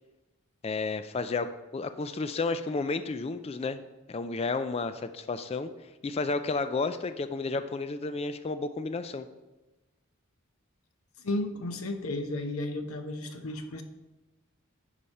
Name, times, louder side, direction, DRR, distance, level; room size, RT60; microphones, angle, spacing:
voice 1, 0.6-3.8 4.1-5.7 6.0-9.3, left 3 dB, 25° left, 10 dB, 0.3 m, -32 dB
voice 2, 11.2-13.8, left 2 dB, 75° left, 7 dB, 0.8 m, -33 dB
10.0 x 5.1 x 4.1 m, 1.1 s
head